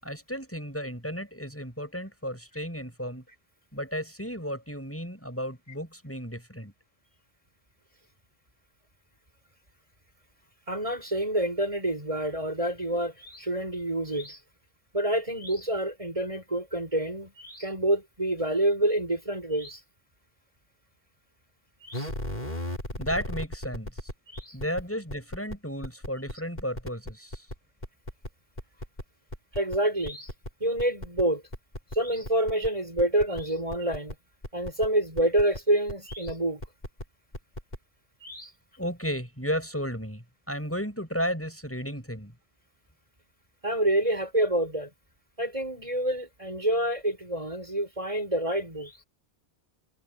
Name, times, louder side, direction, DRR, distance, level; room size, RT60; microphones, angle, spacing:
voice 1, 0.0-3.2 3.7-6.7 23.0-23.9 24.5-27.5 38.8-42.3, equal, 10° left, 7.3 m, -33 dB
voice 2, 10.7-14.4 14.9-19.8 21.8-22.1 24.3-24.6 29.5-30.3 30.6-31.4 31.9-34.1 34.5-36.6 38.2-38.5 43.6-44.9 45.4-49.0, right 1 dB, 30° right, 7.2 m, -27 dB
sound 1, 21.9-24.8 25.1-25.6 25.8-27.5 27.8-28.3 28.6-29.0 29.3-29.8 30.0-30.5 30.8-31.2 31.5-32.0 32.2-32.7 33.0-33.4 33.7-34.1 34.4-34.9 35.2-35.6 35.9-36.3 36.6-37.0 37.3-37.8, left 1 dB, 40° left, 5.6 m, -35 dB
omnidirectional pair, 1.1 m